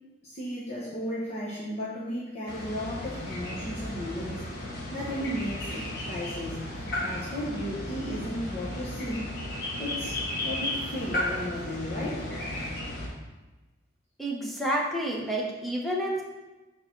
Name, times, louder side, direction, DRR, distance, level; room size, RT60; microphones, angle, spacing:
voice 1, 0.2-4.4 4.9-6.6 7.0-9.3 9.8-12.3, equal, 35° left, -7 dB, 1.0 m, -35 dB
sound 1, 2.5-13.1, left 1 dB, 50° left, 1.2 m, -34 dB
voice 2, 14.2-16.2, right 1 dB, ahead, -3 dB, 0.9 m, -29 dB
4.7 x 4.2 x 5.9 m, 1.1 s
head